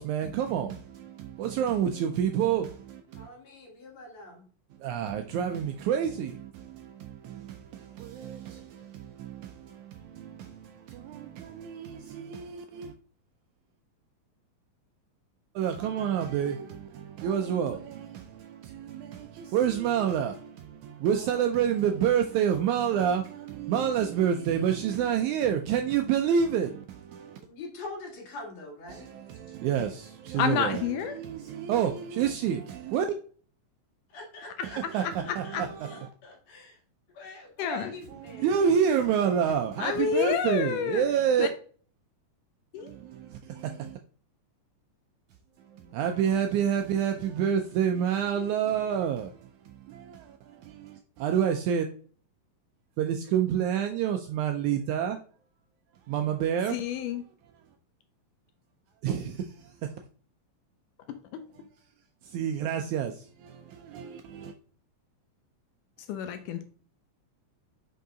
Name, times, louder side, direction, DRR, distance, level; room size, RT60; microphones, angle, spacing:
voice 1, 0.0-3.3 4.8-12.9 15.5-27.4 28.9-33.0 34.6-36.1 38.2-41.5 42.8-44.0 45.7-51.8 53.0-55.2 56.1-56.8 59.0-59.7 62.2-64.5, right 8 dB, 80° right, 1.7 m, -29 dB
voice 2, 3.2-4.4 27.4-29.2 34.1-35.6 35.9-36.7 37.2-38.7, left 2 dB, 55° left, 2.6 m, -43 dB
voice 3, 30.4-31.2 35.0-35.1 35.5-35.6 37.6-37.9 39.8-41.0 41.4-41.5 42.7-42.9 56.7-57.2 61.3-61.4 66.1-66.6, left 8 dB, 80° left, 2.0 m, -29 dB
5.6 x 5.1 x 3.8 m
omnidirectional pair, 3.8 m